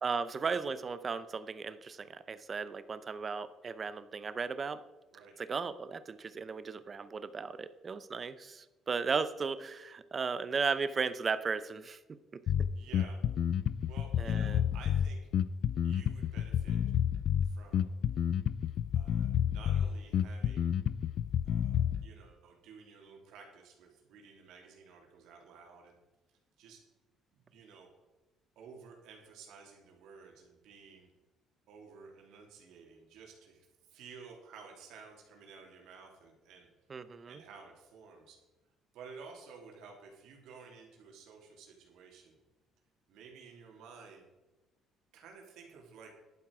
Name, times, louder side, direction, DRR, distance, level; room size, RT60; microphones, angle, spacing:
voice 1, 0.0-4.8 5.4-12.0 14.2-14.6 36.9-37.4, right 5 dB, 25° right, 13 dB, 0.6 m, -35 dB
Bass guitar, 12.5-22.0, left 9 dB, 50° left, 0.4 m, -30 dB
voice 2, 12.7-13.2 13.9-15.2 15.8-16.8 17.4-17.9 18.9-20.7 21.4-26.0 26.3-26.8 27.3-27.9 28.5-31.1 31.7-36.7 36.9-38.4 38.9-42.4 43.1-44.2 45.1-46.1, right 5 dB, 75° right, 1 dB, 3.2 m, -53 dB
11.5 x 9.1 x 4.8 m, 1.1 s
cardioid pair, 165°, 0 cm